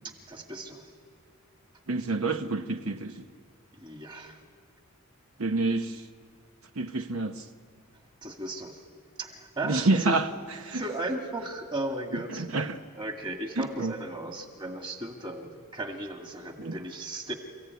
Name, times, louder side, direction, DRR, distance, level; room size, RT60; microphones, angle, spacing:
voice 1, 0.0-0.9 3.7-4.4 8.2-8.9 9.2-10.2 10.7-12.5 12.9-17.3, right 1 dB, 20° right, 2.0 m, -36 dB
voice 2, 1.9-3.3 5.4-6.1 6.8-7.5 9.7-10.3 10.7-10.8 12.4-12.8 13.6-13.9 16.6-16.8, right 3 dB, 70° right, 0.9 m, -28 dB
28.0 x 15.5 x 9.5 m
head